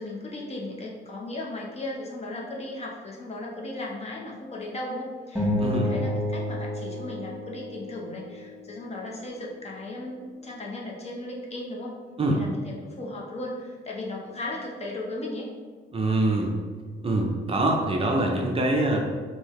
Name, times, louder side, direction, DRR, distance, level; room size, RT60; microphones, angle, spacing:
voice 1, 0.0-12.0 12.3-15.5, left 2 dB, 30° left, -2 dB, 0.8 m, -36 dB
sound 1, 5.4-8.0, left 1 dB, 10° right, 1.2 m, -29 dB
voice 2, 5.6-5.9 12.2-12.4 15.9-16.5 17.0-19.0, right 2 dB, 30° right, 0 dB, 0.5 m, -24 dB
3.8 x 2.8 x 3.1 m, 1.5 s
cardioid pair, 90°, 20 cm